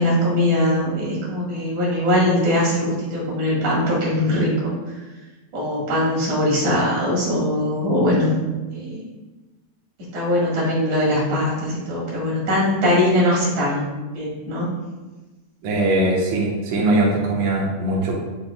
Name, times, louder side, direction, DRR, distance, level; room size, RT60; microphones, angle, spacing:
voice 1, 0.0-4.7 5.5-8.4 8.7-9.0 10.1-13.9 14.1-14.7, left 1 dB, 55° right, -5 dB, 2.8 m, -21 dB
voice 2, 15.6-18.2, right 2 dB, 80° right, -4 dB, 1.5 m, -21 dB
9.6 x 4.4 x 2.2 m, 1.2 s
omnidirectional pair, 4.6 m